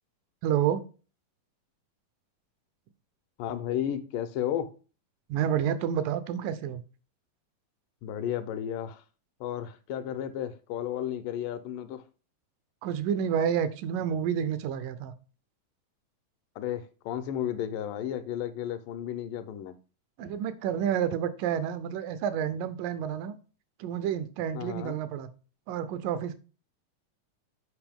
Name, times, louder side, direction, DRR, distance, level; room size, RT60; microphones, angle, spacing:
voice 1, 0.4-0.8 5.3-6.8 12.8-15.1 20.2-23.4 23.8-25.3 25.7-26.4, right 9 dB, 85° right, 2.3 m, -29 dB
voice 2, 3.4-4.7 8.0-9.0 9.4-12.0 16.6-19.8 24.5-25.0, left 10 dB, 85° left, 2.3 m, -33 dB
8.2 x 5.4 x 3.5 m
omnidirectional pair, 3.8 m